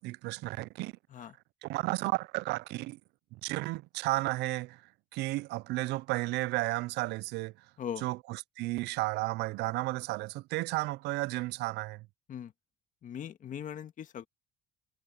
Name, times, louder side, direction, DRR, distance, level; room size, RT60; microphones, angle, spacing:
voice 1, 0.0-0.9 1.6-3.0 3.4-4.8 5.1-7.5 8.0-12.0, right 20 dB, 85° right, 0.4 m, -33 dB
voice 2, 13.0-14.3, left 9 dB, 50° left, 1.7 m, -40 dB
cardioid pair, 110°, 17 cm